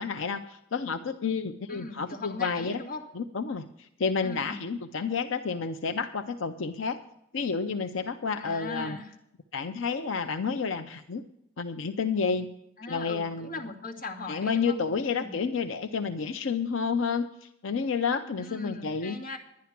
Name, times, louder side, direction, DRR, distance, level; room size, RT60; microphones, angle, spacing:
voice 1, 0.0-2.8 3.1-7.0 7.3-9.0 9.5-11.2 11.6-12.5 12.9-13.6 14.3-19.2, left 5 dB, 80° left, 7 dB, 0.6 m, -30 dB
voice 2, 1.7-3.1 4.2-4.7 8.4-9.1 12.8-14.8 15.2-15.3 18.4-19.4, left 3 dB, 45° left, -1 dB, 2.0 m, -39 dB
11.0 x 10.5 x 5.9 m, 0.82 s
head